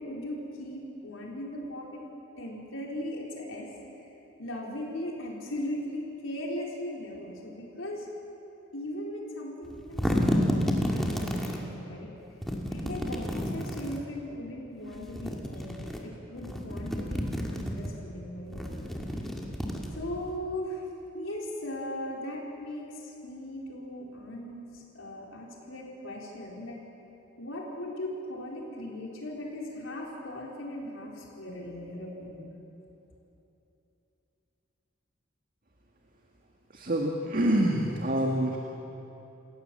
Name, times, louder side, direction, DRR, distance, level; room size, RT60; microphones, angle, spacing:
voice 1, 0.0-2.0 2.4-3.7 4.1-4.2 4.4-8.1 8.7-12.1 12.7-19.0 20.0-20.9 21.1-26.8 27.4-32.5, left 1 dB, 80° left, -2 dB, 4.1 m, -38 dB
sound 1, 9.6-11.6 12.4-14.0 14.9-16.0 16.4-17.9 18.5-20.3, equal, ahead, 2.2 m, -30 dB
voice 2, 36.7-38.6, right 1 dB, 45° right, 0 dB, 1.8 m, -26 dB
29.0 x 16.5 x 7.7 m, 3.0 s
head